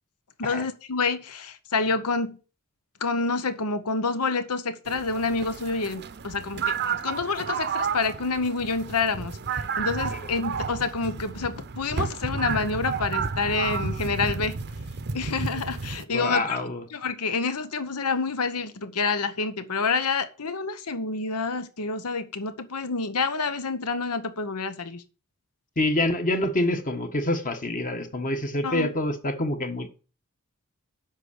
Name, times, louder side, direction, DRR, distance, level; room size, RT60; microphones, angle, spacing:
voice 1, 0.4-2.4 3.0-14.6 15.1-16.6 16.9-25.0 28.6-28.9, left 4 dB, 85° left, 1.0 m, -28 dB
sound 1, 4.9-16.0, right 5 dB, 50° right, 0.7 m, -31 dB
voice 2, 16.1-16.8 25.8-29.9, left 1 dB, 35° left, 1.4 m, -26 dB
8.3 x 5.8 x 6.6 m
head